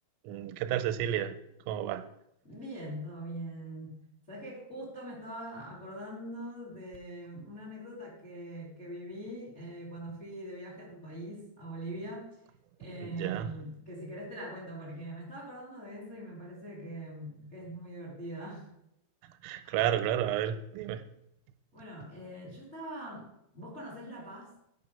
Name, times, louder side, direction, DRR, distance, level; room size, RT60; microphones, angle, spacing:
voice 1, 0.2-1.4 1.7-2.1 13.0-13.5 19.4-21.0, right 11 dB, 90° right, 10 dB, 3.2 m, -31 dB
voice 2, 2.4-4.0 4.3-12.3 12.8-18.7 21.7-23.3 23.5-24.5, right 1 dB, 25° left, -3 dB, 1.7 m, -42 dB
9.2 x 5.9 x 5.4 m, 0.79 s
omnidirectional pair, 5.8 m